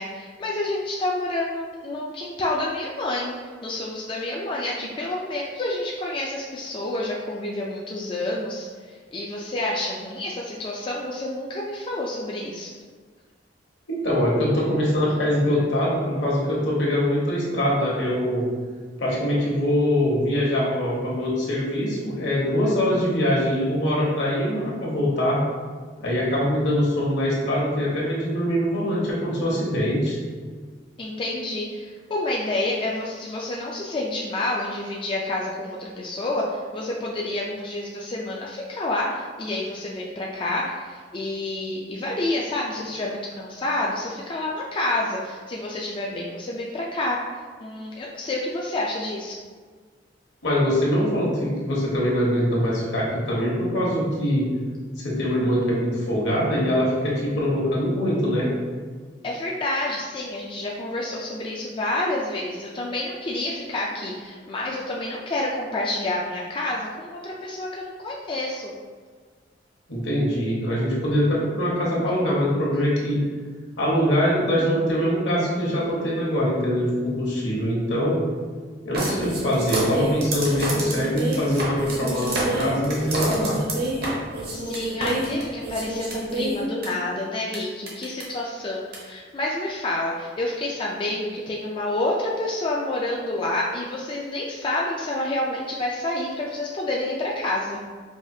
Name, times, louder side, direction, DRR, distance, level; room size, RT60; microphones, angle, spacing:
voice 1, 0.0-3.3 3.6-8.7 9.1-12.7 31.0-47.2 47.6-49.3 59.2-68.7 84.5-97.8, left 1 dB, 30° left, -3 dB, 0.3 m, -28 dB
voice 2, 14.0-18.4 19.0-25.4 26.0-30.2 50.4-54.4 55.0-58.5 69.9-73.2 73.8-78.2 78.8-83.6, equal, 70° left, -5 dB, 1.1 m, -23 dB
sound 1, 78.9-86.9 87.5-87.6 87.9-88.2 88.9-89.0, right 1 dB, 60° right, 0.8 m, -28 dB
4.8 x 2.4 x 2.7 m, 1.5 s
head